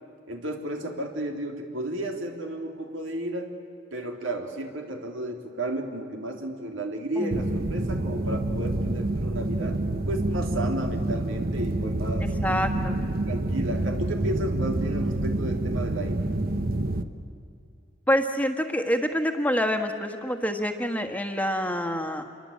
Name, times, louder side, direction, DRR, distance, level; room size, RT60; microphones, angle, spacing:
voice 1, 0.3-3.5 3.9-9.8 10.0-12.3 12.9-16.2, right 1 dB, 90° right, 4 dB, 3.3 m, -33 dB
voice 2, 7.2-7.5 12.2-13.0 18.1-22.2, equal, 10° left, 5 dB, 1.6 m, -27 dB
sound 1, 7.3-17.0, right 1 dB, 50° right, 1.1 m, -27 dB
27.5 x 23.0 x 8.7 m, 2.5 s
head